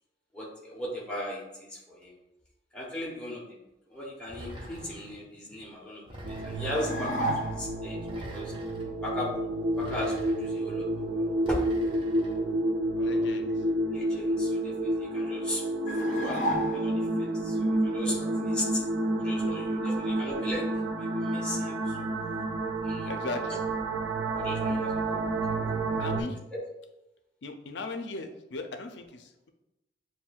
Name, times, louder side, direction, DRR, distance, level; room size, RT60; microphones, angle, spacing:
voice 1, 0.3-2.1 2.7-3.6 3.9-8.0 8.3-8.5 9.0-9.3 9.7-11.7 13.0-13.3 13.9-15.6 16.0-18.8 19.1-20.7 21.0-22.1 22.6-23.4 24.3-25.6 26.5-26.6, left 1 dB, 5° left, -5 dB, 1.0 m, -37 dB
sound 1, 4.3-5.2 6.1-7.0 8.0-8.9 9.7-10.6 11.4-12.4, equal, 25° right, 0.8 m, -45 dB
sound 2, 6.2-26.2, right 1 dB, 90° right, 0.5 m, -30 dB
sound 3, 6.6-7.8 15.9-17.2, equal, 45° left, 0.8 m, -32 dB
voice 2, 13.0-13.6 19.4-20.2 23.1-23.6 26.0-26.4 27.4-29.5, left 3 dB, 75° left, 6 dB, 0.5 m, -38 dB
7.0 x 2.6 x 2.3 m, 0.94 s
head